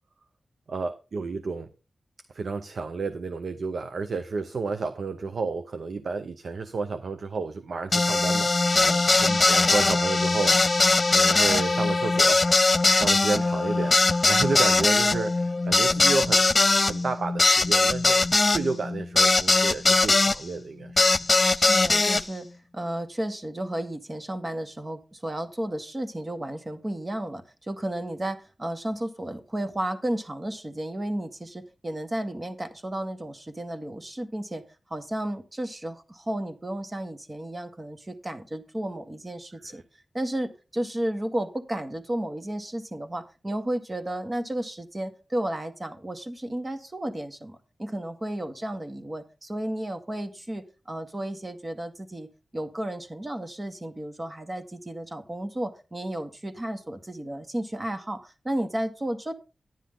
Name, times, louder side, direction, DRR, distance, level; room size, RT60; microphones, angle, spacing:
voice 1, 0.7-1.7 2.3-8.5 9.2-10.8 11.1-16.4 16.8-21.0 39.7-39.8, right 4 dB, 75° right, 9 dB, 0.7 m, -31 dB
sound 1, 7.9-20.4 21.0-22.2, left 3 dB, 40° left, 0.4 m, -21 dB
voice 2, 21.5-22.5 22.7-34.6 34.9-39.8 40.1-52.3 52.5-59.3, right 1 dB, 35° right, 7 dB, 1.7 m, -33 dB
10.5 x 10.0 x 3.8 m, 0.32 s
cardioid pair, 50°, 0 cm